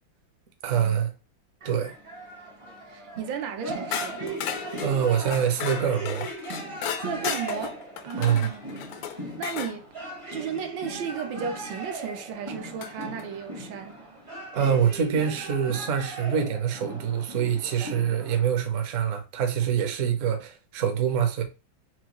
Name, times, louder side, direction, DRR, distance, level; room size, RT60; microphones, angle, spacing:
voice 1, 0.6-1.1 1.6-1.9 4.8-6.3 8.2-8.5 14.5-21.4, right 8 dB, 55° right, 0.9 m, -25 dB
sound 1, 1.6-18.5, right 1 dB, 35° right, 0.5 m, -38 dB
voice 2, 2.9-4.2 7.0-8.6 9.1-9.9 10.3-14.0, right 7 dB, 75° right, 1.3 m, -34 dB
sound 2, 3.9-9.8 11.7-11.8 12.8-13.3, left 9 dB, 80° left, 0.8 m, -35 dB
6.0 x 2.3 x 2.9 m
omnidirectional pair, 2.1 m